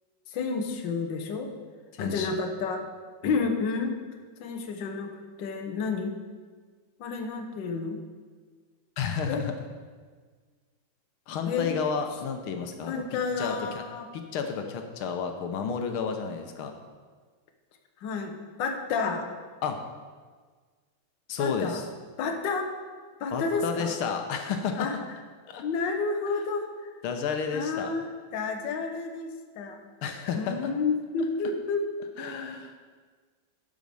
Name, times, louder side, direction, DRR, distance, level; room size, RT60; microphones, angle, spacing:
voice 1, 0.3-1.5 2.0-2.8 3.2-4.0 4.4-6.1 7.0-8.0 9.3-9.4 11.4-11.7 12.9-14.1 18.0-18.3 18.6-19.3 21.4-21.8 22.2-22.7 23.2-23.9 24.7-25.0 25.6-26.9 27.5-29.8 30.3-31.8, left 4 dB, 65° left, 5 dB, 1.6 m, -30 dB
voice 2, 1.9-2.3 3.2-3.4 9.0-9.5 11.3-13.8 14.1-16.7 19.6-19.8 21.3-21.8 23.3-24.9 25.5-25.6 27.0-27.9 30.0-30.7 32.2-32.7, left 6 dB, 85° left, 5 dB, 1.7 m, -31 dB
11.5 x 5.2 x 6.9 m, 1.5 s
omnidirectional pair, 2.3 m